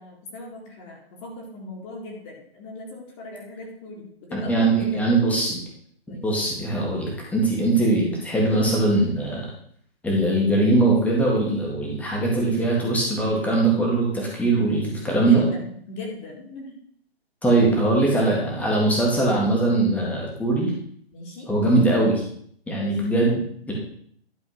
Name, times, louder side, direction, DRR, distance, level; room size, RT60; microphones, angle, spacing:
voice 1, 0.0-5.1 6.1-6.2 15.1-16.7 21.1-21.5 22.8-23.0, left 2 dB, 30° left, -1 dB, 2.4 m, -38 dB
voice 2, 4.3-5.6 6.2-9.5 10.0-15.4 17.4-20.7 21.5-22.2 22.7-23.7, right 2 dB, 5° left, -3 dB, 1.8 m, -21 dB
11.5 x 4.1 x 5.9 m, 0.64 s
hypercardioid pair, 145°, 32 cm